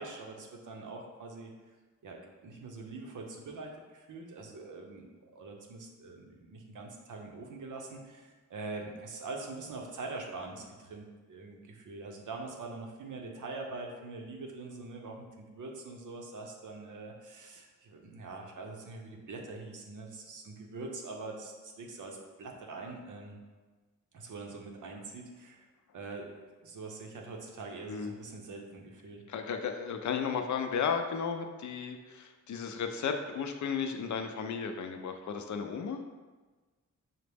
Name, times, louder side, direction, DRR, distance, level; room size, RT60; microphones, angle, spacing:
voice 1, 0.0-1.5 2.0-23.4 24.1-25.7 25.9-29.2, right 3 dB, 75° right, 1 dB, 0.7 m, -44 dB
voice 2, 27.9-28.2 29.3-36.0, left 6 dB, 70° left, 5 dB, 0.4 m, -34 dB
5.6 x 2.0 x 3.3 m, 1.3 s
wide cardioid pair, 115°, 31 cm